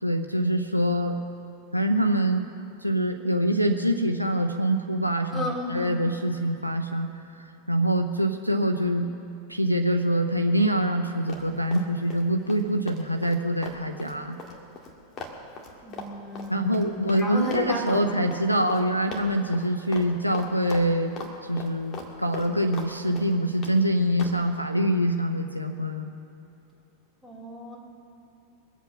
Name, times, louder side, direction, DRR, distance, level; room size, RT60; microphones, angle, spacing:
voice 1, 0.0-1.2 1.7-2.5 2.8-7.1 7.7-9.1 9.5-14.4 16.5-26.1, equal, 90° right, 3 dB, 0.7 m, -25 dB
voice 2, 5.3-6.0 15.8-18.2 27.2-27.8, left 1 dB, 5° left, -2 dB, 3.0 m, -33 dB
Run, 11.3-12.2 12.5-17.3 17.5-18.0 18.3-18.4 18.7-18.8 19.1-19.7 19.9-20.1 20.3-21.3 21.6-22.9 23.2-23.8 24.2-24.4, left 3 dB, 30° left, 2.1 m, -39 dB
23.0 x 8.3 x 5.8 m, 2.8 s
figure-of-eight pair, 90°, 0 cm